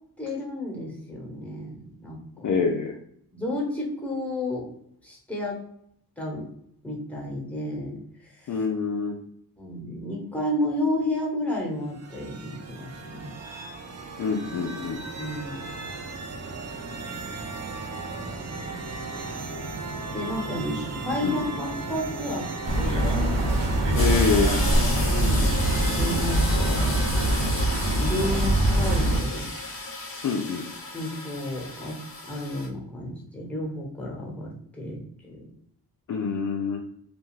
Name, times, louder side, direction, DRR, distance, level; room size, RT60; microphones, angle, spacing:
voice 1, 0.2-2.6 3.3-4.7 5.0-5.6 6.2-6.5 6.8-8.6 9.6-13.3 15.0-15.6 20.1-22.5 22.8-23.3 25.0-26.9 28.0-29.5 30.9-32.0 32.2-35.5, left 1 dB, 5° left, -2 dB, 1.0 m, -32 dB
voice 2, 2.4-2.9 8.5-9.1 14.2-15.0 20.7-20.8 21.2-21.4 23.9-24.6 30.2-30.7 36.1-36.8, left 5 dB, 50° left, 2 dB, 0.4 m, -26 dB
sound 1, 11.8-30.0, right 3 dB, 40° right, 0.5 m, -37 dB
sound 2, 22.6-29.2, right 1 dB, 80° right, 0.9 m, -23 dB
sound 3, 24.0-32.7, left 2 dB, 30° left, 0.8 m, -34 dB
2.5 x 2.3 x 3.1 m, 0.69 s
cardioid pair, 65°, 42 cm